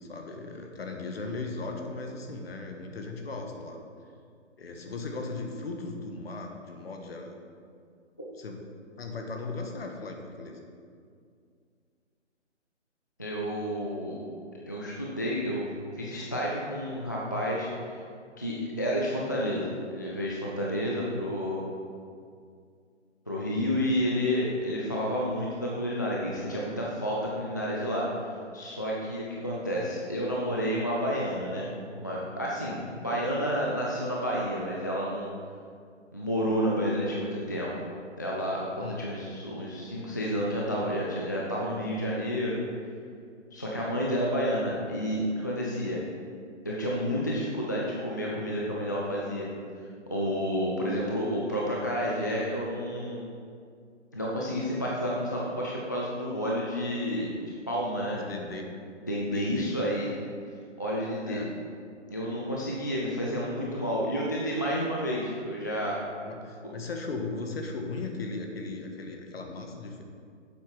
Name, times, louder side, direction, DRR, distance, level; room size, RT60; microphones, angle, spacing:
voice 1, 0.0-3.8 4.6-7.4 8.4-8.6 9.0-10.7 32.9-33.0 38.8-39.0 58.1-58.7 59.3-59.7 61.2-61.5 66.2-70.0, left 3 dB, 55° left, 3 dB, 1.5 m, -37 dB
voice 2, 13.2-14.2 14.7-15.7 16.0-18.0 18.4-21.6 23.3-28.1 28.5-35.3 36.1-37.7 38.2-42.6 43.5-46.0 46.6-49.5 50.1-53.2 54.1-57.3 57.7-58.2 59.1-60.1 60.8-61.4 62.1-66.0, equal, 15° left, -4 dB, 0.4 m, -30 dB
9.3 x 7.4 x 4.8 m, 2.3 s
figure-of-eight pair, 145°, 36 cm